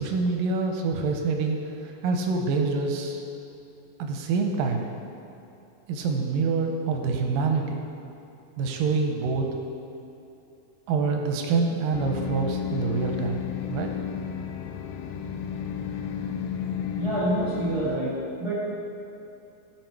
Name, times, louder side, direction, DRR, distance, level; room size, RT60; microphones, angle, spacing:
voice 1, 0.0-3.2 4.0-4.9 5.9-7.8 8.6-9.5 10.9-13.4 13.7-13.9, right 4 dB, 80° right, 3 dB, 2.1 m, -26 dB
sound 1, 11.9-18.0, left 8 dB, 80° left, 2.0 m, -32 dB
voice 2, 16.9-18.5, right 1 dB, 45° right, -8 dB, 1.4 m, -27 dB
13.5 x 4.9 x 4.6 m, 2.8 s
omnidirectional pair, 4.3 m